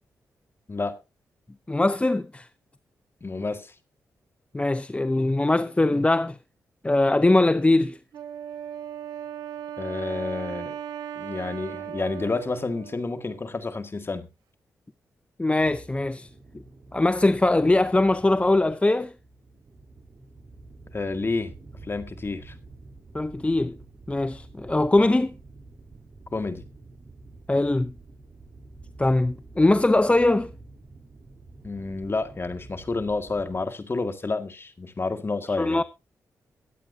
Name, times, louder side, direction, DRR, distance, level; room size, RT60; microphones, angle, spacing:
voice 1, 1.7-2.5 4.5-6.4 6.8-8.0 15.4-16.3 16.9-19.1 23.1-23.8 24.1-25.3 27.5-27.9 29.0-30.5 35.6-35.8, left 2 dB, 20° left, 0.6 m, -21 dB
voice 2, 3.2-3.7 9.8-10.8 11.1-14.3 20.9-21.5 21.9-22.5 26.3-26.6 31.6-35.8, left 3 dB, 35° left, 1.8 m, -30 dB
Wind instrument woodwind instrument, 8.1-13.5, right 9 dB, 90° right, 1.0 m, -37 dB
sound 1, 15.6-33.7, right 2 dB, 40° right, 3.5 m, -48 dB
22.5 x 8.3 x 2.7 m
cardioid pair, 55°, 6 cm